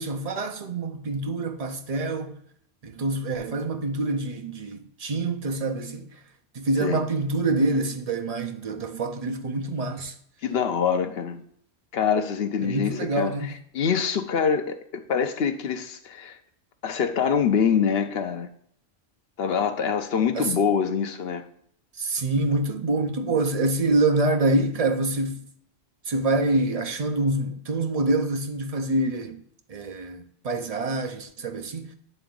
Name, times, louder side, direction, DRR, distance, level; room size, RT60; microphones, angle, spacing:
voice 1, 0.0-2.4 2.8-6.1 6.5-10.1 12.6-13.5 20.3-20.6 22.0-25.4 26.1-29.4 29.7-31.9, right 2 dB, 40° right, 0.7 m, -26 dB
voice 2, 10.4-11.4 11.9-16.4 16.8-18.5 19.4-21.4, left 7 dB, 70° left, 0.9 m, -25 dB
9.1 x 3.5 x 3.7 m
omnidirectional pair, 1.1 m